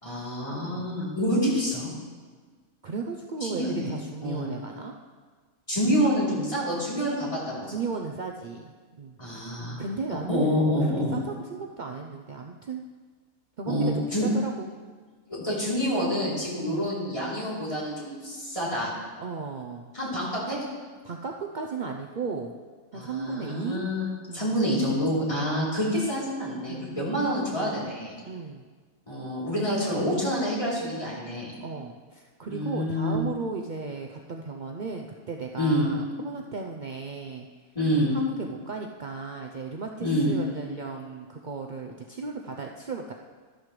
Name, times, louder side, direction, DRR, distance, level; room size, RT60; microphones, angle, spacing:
voice 1, 0.0-1.9 3.4-4.5 5.7-7.8 9.2-9.8 10.3-11.1 13.7-14.3 15.3-18.9 19.9-20.6 22.9-24.1 24.3-28.1 29.1-31.5 32.5-33.2 35.6-35.9 37.8-38.1 40.0-40.3, equal, 20° left, -7 dB, 3.4 m, -27 dB
voice 2, 2.8-4.9 7.7-9.2 9.8-10.6 11.1-12.8 13.6-14.8 16.6-16.9 19.2-19.9 21.0-22.5 22.9-23.9 24.3-24.5 25.3-26.0 26.6-27.0 28.3-28.6 31.6-37.5 38.1-43.1, right 4 dB, 65° right, 2 dB, 0.4 m, -35 dB
12.5 x 12.0 x 3.2 m, 1.5 s
omnidirectional pair, 1.6 m